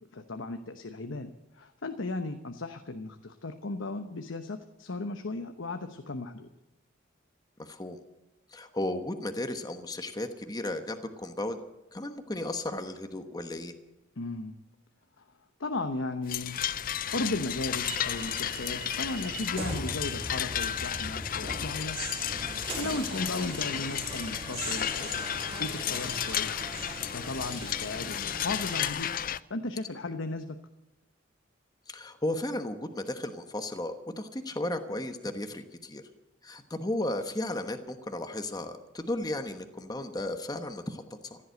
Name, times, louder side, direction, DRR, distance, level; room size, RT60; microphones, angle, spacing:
voice 1, 0.1-6.5 14.2-14.5 15.2-15.3 15.6-16.6 17.1-22.0 22.8-25.1 25.4-29.1 29.5-30.6, left 2 dB, 80° left, 8 dB, 1.0 m, -36 dB
voice 2, 7.6-8.0 8.5-11.6 11.9-13.7 22.8-23.1 31.9-36.0 36.4-41.4, left 1 dB, 20° left, 7 dB, 1.1 m, -34 dB
sound 1, 16.3-29.4, left 10 dB, 45° left, 0.5 m, -33 dB
sound 2, 17.1-28.9, right 2 dB, 30° right, 3.8 m, -40 dB
15.5 x 11.0 x 7.8 m, 0.98 s
head